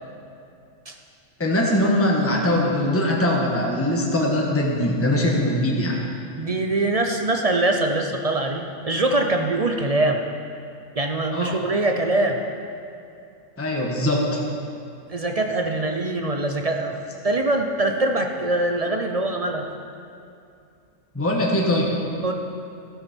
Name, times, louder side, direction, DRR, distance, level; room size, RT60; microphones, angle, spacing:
voice 1, 1.4-6.0 11.3-11.6 13.6-14.4 21.1-21.9, left 1 dB, 10° left, -2 dB, 1.3 m, -21 dB
voice 2, 6.4-10.2 11.0-12.4 15.1-19.6 22.2-22.3, right 2 dB, 40° right, 3 dB, 0.5 m, -23 dB
13.0 x 12.5 x 4.5 m, 2.5 s
omnidirectional pair, 1.6 m